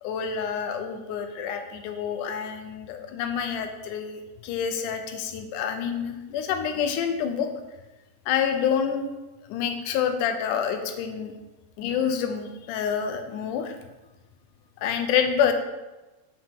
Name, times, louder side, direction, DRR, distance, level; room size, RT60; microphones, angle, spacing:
voice 1, 0.0-7.5 8.3-9.0 9.5-11.3 11.8-13.8 14.8-15.5, left 7 dB, 85° left, 6 dB, 2.2 m, -27 dB
6.9 x 5.9 x 3.6 m, 1.1 s
omnidirectional pair, 3.5 m